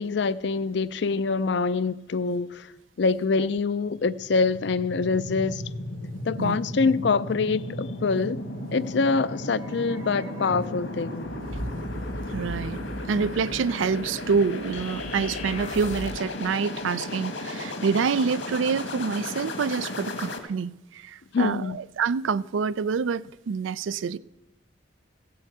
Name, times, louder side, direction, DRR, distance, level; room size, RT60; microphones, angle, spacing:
voice 1, 0.0-2.7 3.0-5.6 6.3-8.4 8.7-11.3 21.3-21.8, left 4 dB, 65° left, 0.4 m, -25 dB
sound 1, 3.9-20.4, left 1 dB, 80° left, 1.8 m, -35 dB
sound 2, 8.8-16.9 17.2-17.3, equal, 20° right, 0.7 m, -40 dB
voice 2, 12.3-12.8 13.1-24.2, right 5 dB, 80° right, 0.4 m, -27 dB
sound 3, 14.7-16.3, left 3 dB, 40° left, 0.8 m, -38 dB
16.0 x 7.7 x 7.9 m
head